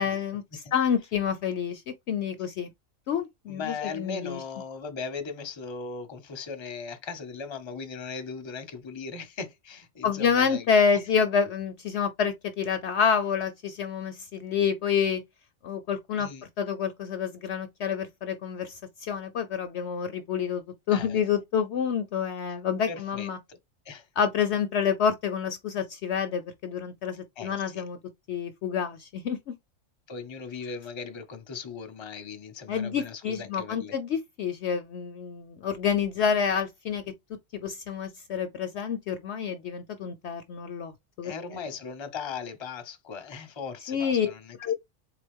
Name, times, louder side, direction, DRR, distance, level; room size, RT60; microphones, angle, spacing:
voice 1, 0.0-1.8 2.1-2.7 3.1-4.4 10.0-15.2 15.6-16.3 16.6-20.6 20.9-23.4 24.2-28.0 28.3-29.6 32.7-37.0 37.5-40.9 41.2-41.3 43.9-44.3 44.6-44.7, left 7 dB, 65° left, 0.8 m, -28 dB
voice 2, 3.5-11.0 16.2-16.4 20.9-21.2 22.9-23.6 23.8-24.1 27.4-27.8 30.1-33.9 41.2-44.7, left 5 dB, 25° left, 0.7 m, -38 dB
4.0 x 3.6 x 3.5 m
omnidirectional pair, 1.4 m